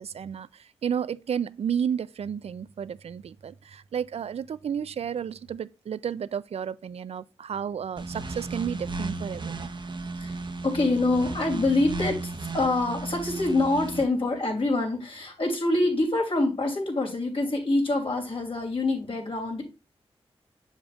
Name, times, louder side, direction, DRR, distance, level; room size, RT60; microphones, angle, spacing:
voice 1, 0.0-9.7, right 8 dB, 75° right, 0.4 m, -32 dB
sound 1, 8.0-14.0, right 3 dB, 50° right, 0.9 m, -34 dB
voice 2, 10.6-19.6, left 2 dB, 60° left, 2.9 m, -25 dB
7.2 x 6.8 x 2.4 m
cardioid pair, 60°, 11 cm